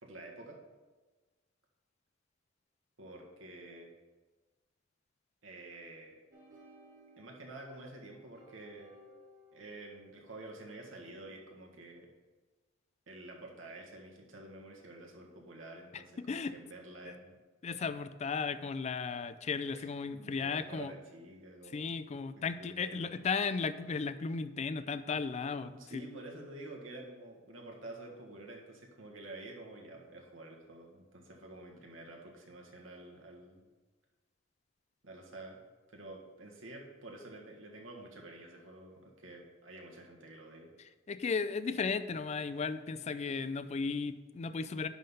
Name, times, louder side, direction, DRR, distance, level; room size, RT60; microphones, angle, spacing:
voice 1, 0.0-0.6 3.0-3.9 5.4-6.2 7.2-8.9 9.5-12.1 13.1-17.4 19.7-21.9 22.3-23.1 25.7-33.6 35.0-35.6 35.9-40.7, right 2 dB, 85° right, 0 dB, 1.6 m, -49 dB
sound 1, 6.3-11.4, equal, 50° right, 2.8 m, -60 dB
voice 2, 17.6-20.9 21.7-25.7 41.1-44.9, left 5 dB, 35° left, 13 dB, 0.4 m, -35 dB
10.5 x 3.8 x 5.5 m, 1.2 s
head